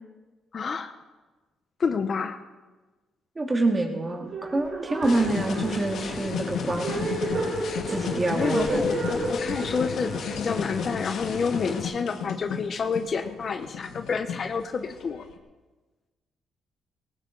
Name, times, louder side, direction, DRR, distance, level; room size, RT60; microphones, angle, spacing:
voice 1, 0.5-0.9 1.8-2.4 8.3-15.2, left 5 dB, 50° left, 8 dB, 1.0 m, -29 dB
voice 2, 3.3-7.1 7.9-8.9, right 2 dB, 25° right, 1 dB, 2.6 m, -27 dB
sound 1, 4.2-11.4, right 2 dB, 55° right, 4.7 m, -32 dB
sound 2, 5.0-11.8, left 5 dB, 65° left, 1.7 m, -35 dB
sound 3, 5.3-15.4, left 7 dB, 85° left, 1.5 m, -36 dB
18.5 x 17.5 x 4.0 m, 1.2 s
cardioid pair, 90°, 0 cm